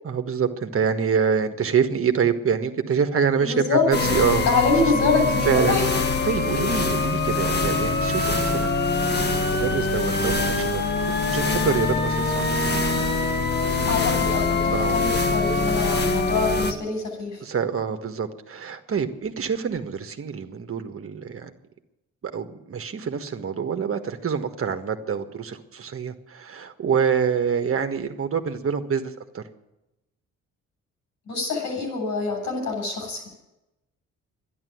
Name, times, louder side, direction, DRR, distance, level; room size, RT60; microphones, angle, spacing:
voice 1, 0.0-4.5 5.5-5.8 6.2-8.7 9.1-10.8 11.3-12.5 14.7-15.0 17.4-21.5 22.2-29.4, right 6 dB, 45° right, 7 dB, 1.7 m, -26 dB
voice 2, 3.4-3.8 4.5-5.8 12.2-12.4 13.9-17.4 31.3-33.3, left 4 dB, 75° left, 3 dB, 7.8 m, -25 dB
sound 1, 3.9-16.7, left 3 dB, 35° left, 1.9 m, -23 dB
12.5 x 11.0 x 9.4 m, 0.91 s
cardioid pair, 90°, 30 cm